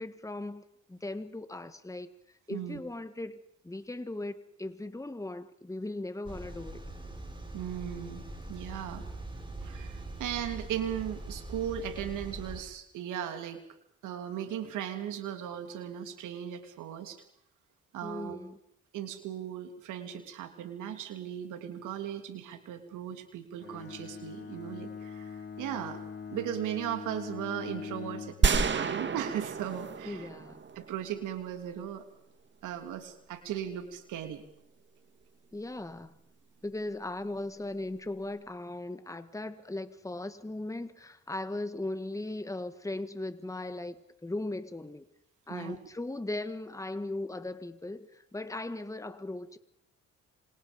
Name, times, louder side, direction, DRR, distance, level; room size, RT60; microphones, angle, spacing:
voice 1, 0.0-2.1 2.5-6.9 18.0-18.6 30.0-30.6 35.5-36.2 36.6-45.1 45.5-49.6, left 2 dB, 10° left, 11 dB, 1.8 m, -38 dB
sound 1, 6.2-12.6, right 2 dB, 15° right, 5.4 m, -42 dB
voice 2, 7.5-8.2 8.5-9.0 9.6-13.6 14.0-17.2 17.9-18.4 18.9-26.0 26.3-30.3 30.7-32.1 32.6-34.4 45.5-45.8, right 10 dB, 90° right, 7 dB, 3.1 m, -37 dB
Bowed string instrument, 23.6-28.5, left 6 dB, 35° left, 2.1 m, -42 dB
sound 2, 28.4-31.3, right 5 dB, 40° right, 2.0 m, -30 dB
27.0 x 26.5 x 5.3 m, 0.70 s
cardioid pair, 90°, 30 cm